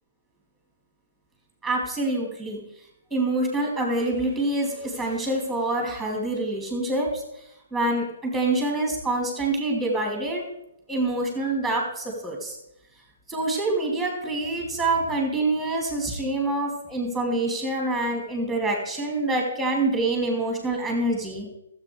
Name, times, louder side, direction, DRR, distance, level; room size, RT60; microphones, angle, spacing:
voice 1, 1.6-2.6 3.1-7.2 7.7-10.5 10.9-12.6 13.3-21.5, right 2 dB, ahead, 0 dB, 3.4 m, -26 dB
13.0 x 8.1 x 4.8 m, 0.83 s
hypercardioid pair, 150°, 0 cm